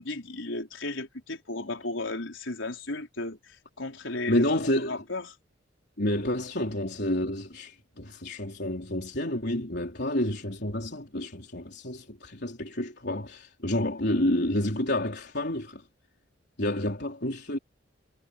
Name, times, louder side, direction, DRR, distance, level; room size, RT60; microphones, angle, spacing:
voice 1, 0.0-4.5 4.8-5.3, left 2 dB, 80° left, 4.5 m, -34 dB
voice 2, 4.3-5.0 6.0-15.8 16.6-17.6, left 1 dB, 60° left, 4.2 m, -29 dB
head